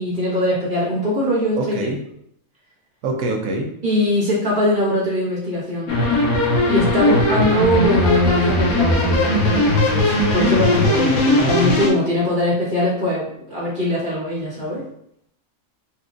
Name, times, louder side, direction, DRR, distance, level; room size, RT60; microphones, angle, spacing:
voice 1, 0.0-1.9 3.8-5.9 6.7-14.8, left 1 dB, 35° right, -8 dB, 1.2 m, -21 dB
voice 2, 1.6-2.0 3.0-3.7 7.1-7.5, right 2 dB, 70° right, 2 dB, 1.0 m, -24 dB
sound 1, 5.9-11.9, left 1 dB, 65° left, 1.0 m, -18 dB
4.2 x 2.4 x 2.5 m, 0.71 s
omnidirectional pair, 1.5 m